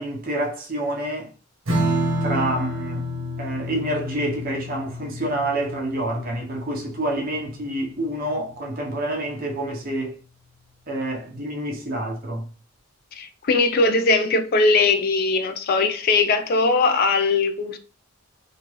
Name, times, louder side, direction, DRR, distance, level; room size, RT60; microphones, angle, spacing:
voice 1, 0.0-1.3 2.2-3.1 3.4-10.2 10.9-12.5, right 1 dB, 45° right, 0.7 m, -28 dB
Strum, 1.7-8.5, equal, 75° right, 0.9 m, -29 dB
voice 2, 13.1-17.8, left 3 dB, 45° left, 0.3 m, -20 dB
2.9 x 2.3 x 3.0 m
head